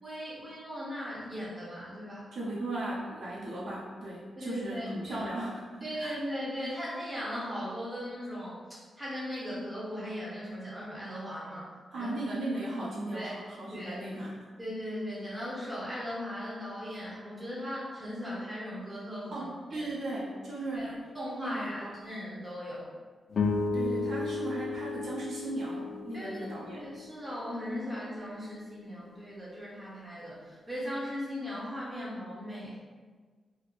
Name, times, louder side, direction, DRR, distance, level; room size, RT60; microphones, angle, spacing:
voice 1, 0.0-2.2 4.4-5.3 5.8-8.6 9.0-12.1 13.1-13.4 13.7-14.0 14.6-19.9 20.7-20.8 21.1-22.9 26.1-26.5 26.7-32.8, equal, 15° right, -7 dB, 0.9 m, -38 dB
voice 2, 2.3-6.2 11.9-14.3 19.3-21.1 21.4-21.9 23.7-26.8, right 1 dB, 75° right, -6 dB, 0.9 m, -37 dB
sound 1, 23.3-27.8, left 3 dB, 65° left, 0.3 m, -34 dB
2.7 x 2.2 x 4.1 m, 1.5 s
cardioid pair, 95°, 0 cm